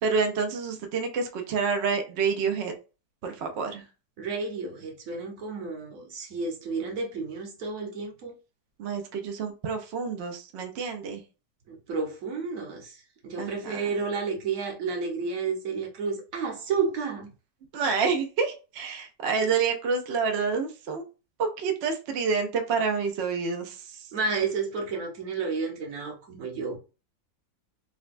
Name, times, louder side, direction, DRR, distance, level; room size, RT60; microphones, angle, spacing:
voice 1, 0.0-2.7 3.2-3.8 8.8-11.2 13.4-13.8 17.7-21.0 21.4-24.1, right 5 dB, 75° right, 0.6 m, -28 dB
voice 2, 4.2-8.4 11.7-17.3 24.1-26.8, right 4 dB, 55° right, 1.1 m, -31 dB
4.0 x 2.1 x 2.5 m
omnidirectional pair, 1.9 m